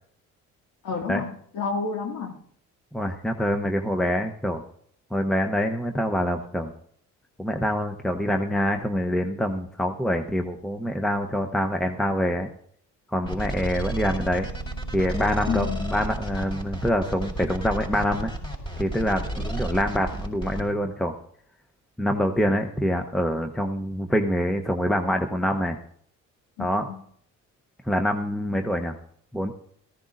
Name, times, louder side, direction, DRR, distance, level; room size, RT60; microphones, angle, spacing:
voice 1, 0.8-2.4 15.5-15.8 26.6-27.0, left 5 dB, 80° left, 3 dB, 2.1 m, -30 dB
voice 2, 2.9-4.6 5.1-6.7 7.4-12.5 13.1-14.5 14.9-18.3 18.8-21.1 22.0-25.8 26.6-26.9 27.8-29.0 29.3-29.5, equal, ahead, 5 dB, 0.8 m, -25 dB
sound 1, 13.2-20.6, right 1 dB, 15° left, 4.6 m, -32 dB
18.0 x 15.0 x 2.6 m, 0.64 s
cardioid pair, 85°, 31 cm